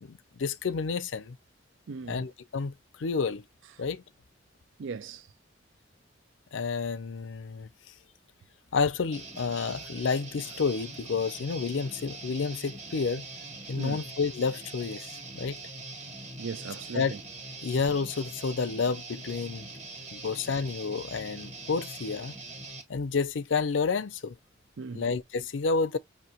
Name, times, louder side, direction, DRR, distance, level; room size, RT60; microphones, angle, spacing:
voice 1, 0.0-1.4 2.1-2.7 3.0-3.4 3.8-4.0 6.5-7.7 8.7-13.2 13.7-15.0 15.3-15.6 16.9-17.1 17.6-19.7 20.1-22.4 22.9-24.3 24.9-26.0, left 5 dB, 80° left, 0.5 m, -30 dB
voice 2, 1.9-2.2 4.8-5.3 13.8-14.0 16.4-17.2 24.8-25.0, right 5 dB, 85° right, 0.5 m, -38 dB
Guitar, 9.1-22.8, right 2 dB, 40° right, 1.6 m, -43 dB
5.8 x 2.9 x 2.8 m
head